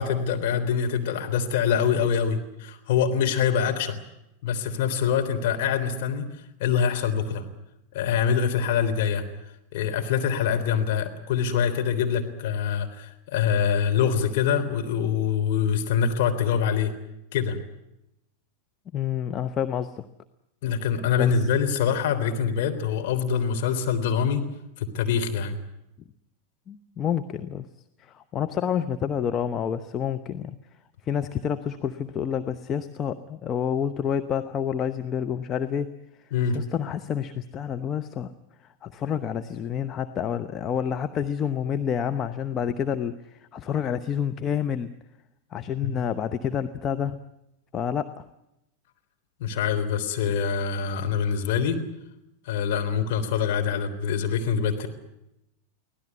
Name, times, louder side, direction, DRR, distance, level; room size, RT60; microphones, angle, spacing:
voice 1, 0.0-4.0 4.4-6.3 6.6-7.4 7.9-9.2 9.7-16.9 17.3-17.6 20.6-24.4 24.8-25.6 36.3-36.6 45.8-45.9 49.4-51.8 52.5-54.9, left 7 dB, 50° left, 4 dB, 3.6 m, -24 dB
voice 2, 18.9-20.0 21.2-21.3 26.7-27.7 28.0-30.6 31.0-35.9 36.5-38.3 38.8-44.9 45.5-47.2 47.7-48.3, left 8 dB, 30° left, 8 dB, 0.9 m, -28 dB
24.5 x 17.5 x 9.6 m, 0.86 s
figure-of-eight pair, 90°, 0 cm